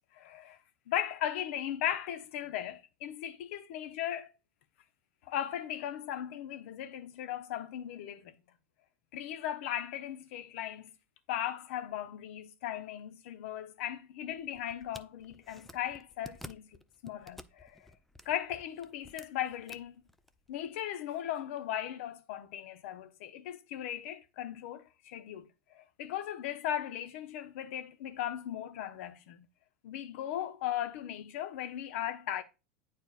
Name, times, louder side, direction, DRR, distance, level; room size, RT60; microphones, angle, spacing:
voice 1, 0.1-0.6 0.9-4.3 5.2-8.4 9.1-10.9 11.3-16.8 17.0-17.9 18.2-20.0 20.5-29.5 29.8-32.4, left 11 dB, 70° left, 0.8 m, -37 dB
sound 1, 14.3-20.8, left 1 dB, 5° left, 0.4 m, -53 dB
9.1 x 4.4 x 2.4 m
hypercardioid pair, 95°, 7 cm